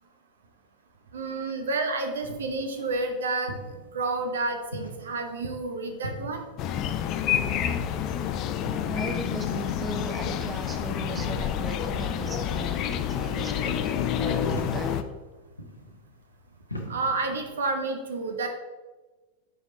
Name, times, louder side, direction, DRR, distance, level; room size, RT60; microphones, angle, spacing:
voice 1, 1.1-3.5 3.9-6.4 16.9-18.5, right 3 dB, 70° right, 5 dB, 0.8 m, -30 dB
sound 1, 1.7-17.6, equal, 85° left, 0.8 m, -43 dB
sound 2, 6.6-15.0, left 9 dB, 40° left, 0.4 m, -28 dB
voice 2, 8.9-15.0, right 3 dB, 20° right, 5 dB, 0.6 m, -37 dB
5.0 x 5.0 x 4.1 m, 1.2 s
figure-of-eight pair, 90°, 0 cm